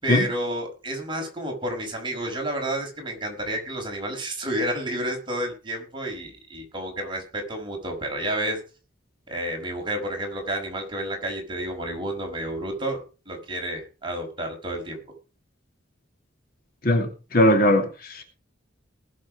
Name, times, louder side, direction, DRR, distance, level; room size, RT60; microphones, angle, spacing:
voice 1, 0.0-8.6 9.3-15.0, right 1 dB, 25° right, 2 dB, 5.5 m, -30 dB
voice 2, 16.8-18.2, left 1 dB, 50° left, 5 dB, 2.6 m, -20 dB
20.0 x 7.7 x 5.1 m, 0.34 s
head